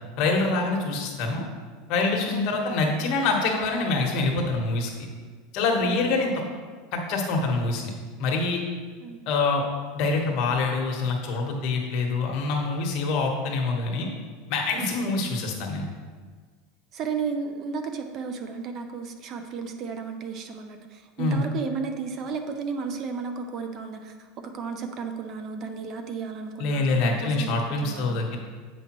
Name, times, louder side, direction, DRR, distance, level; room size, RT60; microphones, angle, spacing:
voice 1, 0.2-1.4 1.9-4.9 5.5-6.3 6.9-7.9 8.2-8.6 9.3-9.6 9.9-14.1 14.5-15.9 21.2-21.4 26.6-28.4, left 3 dB, 50° left, 1 dB, 1.2 m, -25 dB
voice 2, 16.9-28.4, right 5 dB, 40° right, 6 dB, 0.6 m, -34 dB
8.3 x 5.2 x 3.0 m, 1.5 s
supercardioid pair, 140°, 0 cm